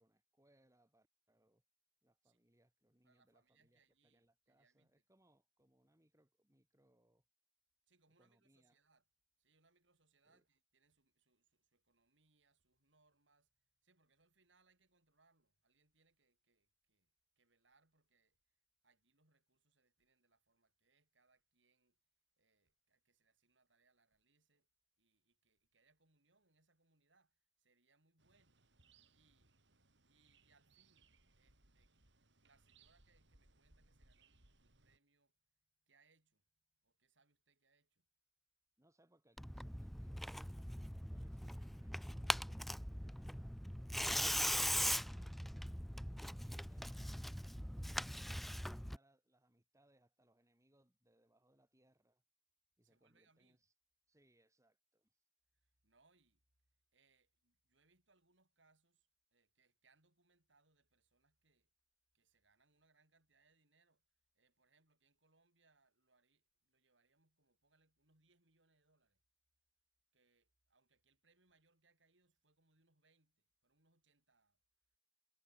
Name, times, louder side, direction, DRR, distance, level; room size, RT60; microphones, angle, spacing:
voice 1, 0.0-1.6 2.0-7.2 8.2-8.8 10.2-10.4 38.8-43.6 44.3-47.1 47.7-52.2 52.8-53.7 54.1-55.2, right 1 dB, 15° right, 3.8 m, -75 dB
voice 2, 3.0-4.9 7.9-9.0 9.4-22.0 22.4-24.7 25.0-29.6 30.0-38.1 52.8-53.6 55.5-56.4 56.9-61.7 62.1-69.2 70.1-74.6, right 3 dB, 85° right, 6.5 m, -78 dB
sound 1, 28.2-35.0, right 3 dB, 70° right, 4.5 m, -71 dB
Tearing, 39.4-49.0, equal, ahead, 0.3 m, -41 dB
head